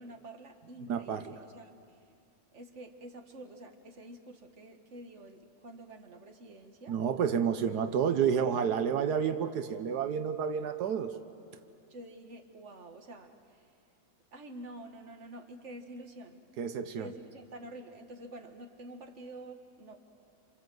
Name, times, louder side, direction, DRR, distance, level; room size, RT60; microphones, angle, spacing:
voice 1, 0.0-2.0 2.5-7.0 11.9-13.7 14.3-16.4 17.0-20.0, right 1 dB, 45° right, 4 dB, 2.1 m, -48 dB
voice 2, 0.9-1.2 6.9-11.1 16.6-17.1, right 7 dB, 90° right, 8 dB, 1.5 m, -30 dB
27.5 x 27.5 x 7.8 m, 2.4 s
omnidirectional pair, 1.7 m